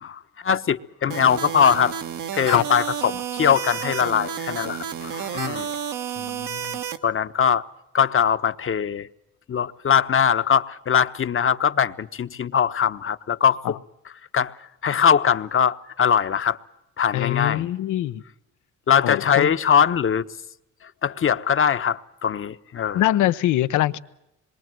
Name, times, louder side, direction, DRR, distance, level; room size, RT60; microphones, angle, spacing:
voice 1, 0.0-1.9 2.3-5.7 7.0-7.6 7.9-9.1 9.5-13.6 14.3-14.5 14.8-16.6 17.0-17.7 18.9-20.3 21.0-23.0, left 7 dB, 45° left, 1.1 m, -21 dB
sound 1, 1.1-7.0, right 8 dB, 75° right, 1.7 m, -31 dB
voice 2, 6.2-6.8 13.6-13.7 17.1-18.2 19.0-19.5 22.9-24.0, left 14 dB, 85° left, 1.0 m, -23 dB
26.5 x 22.5 x 7.7 m
cardioid pair, 90°, 30 cm